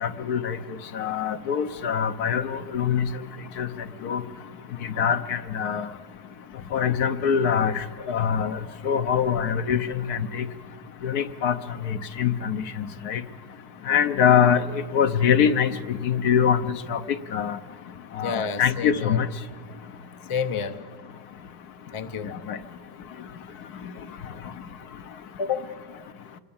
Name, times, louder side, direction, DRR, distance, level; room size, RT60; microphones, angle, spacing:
voice 1, 0.0-0.6 0.9-3.0 3.6-3.7 4.0-4.2 5.0-5.8 6.7-8.6 8.8-9.8 10.1-10.4 11.0-11.5 11.9-13.2 13.9-14.6 14.9-16.6 16.9-17.0 17.3-17.6 18.2-19.3 22.5-22.6, left 8 dB, 70° left, 10 dB, 1.4 m, -23 dB
voice 2, 18.2-19.2 20.3-20.8 21.9-22.4 25.4-25.7, left 6 dB, 35° left, 9 dB, 0.5 m, -29 dB
26.5 x 21.5 x 7.2 m, 1.5 s
omnidirectional pair, 1.8 m